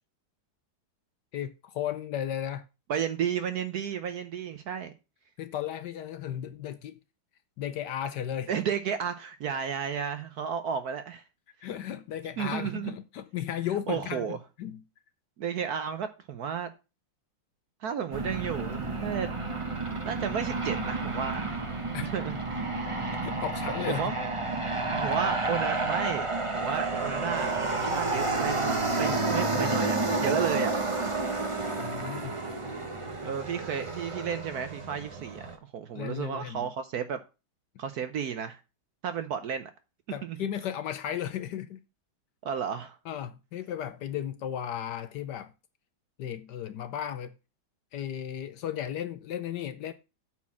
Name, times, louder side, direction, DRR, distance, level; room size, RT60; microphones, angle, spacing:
voice 1, 1.3-2.6 5.4-7.0 7.6-8.5 11.6-14.8 21.9-22.1 22.9-24.1 24.8-24.9 26.6-26.8 28.9-30.7 31.8-32.4 35.9-36.7 40.1-41.8 43.1-45.5 46.2-47.3 47.9-49.9, left 10 dB, 70° left, 1.1 m, -35 dB
voice 2, 2.9-4.9 8.5-11.2 12.4-12.9 13.9-14.4 15.4-16.7 17.8-19.3 20.0-21.6 22.0-22.6 23.9-24.1 24.9-26.3 26.5-28.7 29.0-30.9 33.2-37.2 37.8-38.6 39.0-39.7 40.2-40.4 42.4-43.0, right 7 dB, 65° right, 1.0 m, -33 dB
Aircraft, 18.1-35.5, right 3 dB, 20° right, 1.0 m, -30 dB
8.5 x 4.5 x 7.1 m
omnidirectional pair, 2.2 m